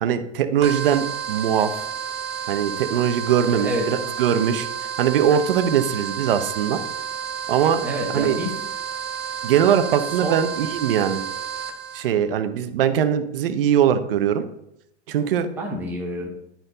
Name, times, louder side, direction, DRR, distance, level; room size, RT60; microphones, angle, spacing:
voice 1, 0.0-1.8 2.5-4.7 5.0-6.8 7.5-7.8 8.1-8.4 9.4-11.2 11.9-14.4 15.1-15.5, right 9 dB, 50° right, 10 dB, 0.7 m, -21 dB
sound 1, 0.6-12.0, right 7 dB, 25° right, 0.4 m, -31 dB
voice 2, 3.5-3.9 7.8-8.5 10.2-10.4 15.6-16.3, right 1 dB, 5° right, -2 dB, 1.0 m, -27 dB
10.5 x 4.4 x 3.9 m, 0.80 s
hypercardioid pair, 165°, 36 cm